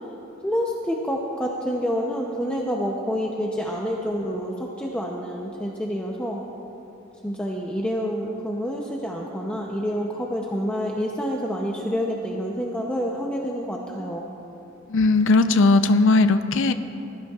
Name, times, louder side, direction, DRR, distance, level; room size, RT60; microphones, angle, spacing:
voice 1, 0.4-6.4 7.2-14.3, equal, 5° left, -2 dB, 0.6 m, -28 dB
voice 2, 14.9-16.7, left 3 dB, 65° left, 10 dB, 0.5 m, -18 dB
20.0 x 13.0 x 2.4 m, 3.0 s
head